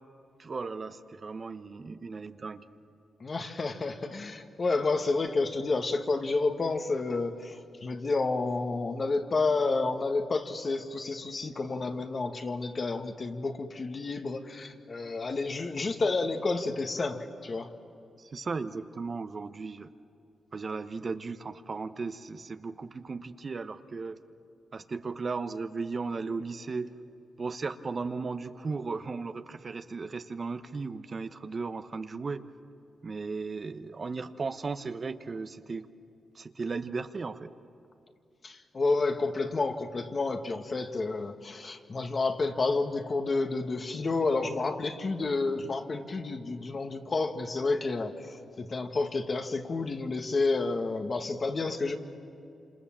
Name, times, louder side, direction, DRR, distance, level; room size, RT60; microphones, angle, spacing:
voice 1, 0.4-2.6 18.2-19.9 20.5-24.2 24.7-26.9 27.4-32.4 33.0-35.9 36.3-37.5, right 4 dB, 45° right, 9 dB, 1.0 m, -36 dB
voice 2, 3.2-17.7 38.4-52.0, left 3 dB, 45° left, 5 dB, 1.8 m, -30 dB
27.5 x 27.0 x 7.5 m, 2.6 s
cardioid pair, 55°, 0 cm